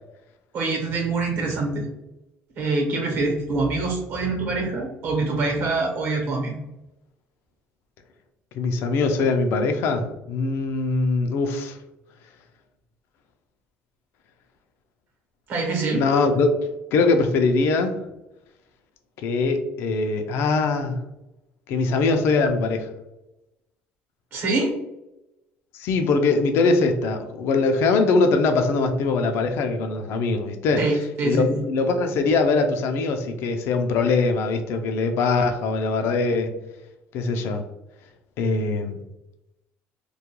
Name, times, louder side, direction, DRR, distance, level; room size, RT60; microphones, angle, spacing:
voice 1, 0.5-1.9 2.6-6.6 15.5-16.0 24.3-24.7 30.8-31.6, right 3 dB, 55° right, 0 dB, 0.9 m, -25 dB
voice 2, 8.5-11.8 15.9-18.0 19.2-21.0 21.7-22.9 25.7-30.8 31.2-36.5 37.1-37.6 38.4-39.0, left 3 dB, 70° left, 5 dB, 0.4 m, -22 dB
2.3 x 2.2 x 2.9 m, 0.91 s
cardioid pair, 140°, 4 cm